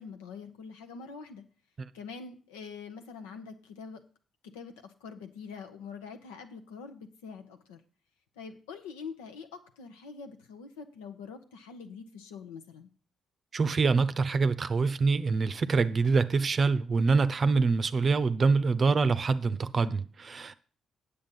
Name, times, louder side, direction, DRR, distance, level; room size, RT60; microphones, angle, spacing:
voice 1, 0.0-1.4 1.9-4.0 4.5-7.8 8.4-12.9, left 5 dB, 80° left, 0.8 m, -44 dB
voice 2, 13.5-20.5, right 4 dB, 45° right, 0.6 m, -25 dB
8.8 x 6.9 x 5.5 m
hypercardioid pair, 45°, 0 cm